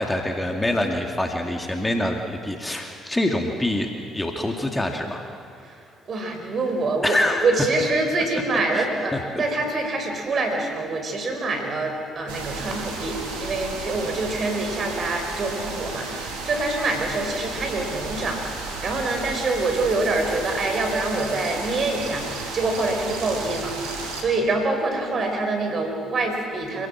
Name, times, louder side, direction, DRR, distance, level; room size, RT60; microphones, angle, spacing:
voice 1, 0.0-5.2 7.0-7.4 8.7-8.8 9.1-9.2, left 1 dB, 10° left, 3 dB, 2.6 m, -25 dB
voice 2, 5.6-26.9, right 2 dB, 45° right, 4 dB, 5.1 m, -26 dB
sound 1, 12.3-24.2, right 3 dB, 70° right, 3.7 m, -33 dB
27.0 x 17.0 x 7.5 m, 2.5 s
hypercardioid pair, 50°, 0 cm